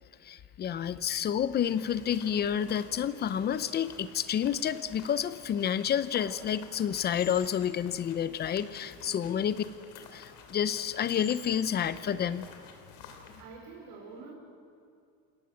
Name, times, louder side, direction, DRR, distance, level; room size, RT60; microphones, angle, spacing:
voice 1, 0.2-9.6 10.1-12.5, left 9 dB, 30° left, 14 dB, 0.8 m, -29 dB
sound 1, 1.6-13.4, left 6 dB, 75° left, 3.3 m, -50 dB
voice 2, 9.0-9.5 13.4-14.4, right 4 dB, 90° right, -1 dB, 5.1 m, -48 dB
29.0 x 18.0 x 7.3 m, 2.3 s
cardioid pair, 155°, 33 cm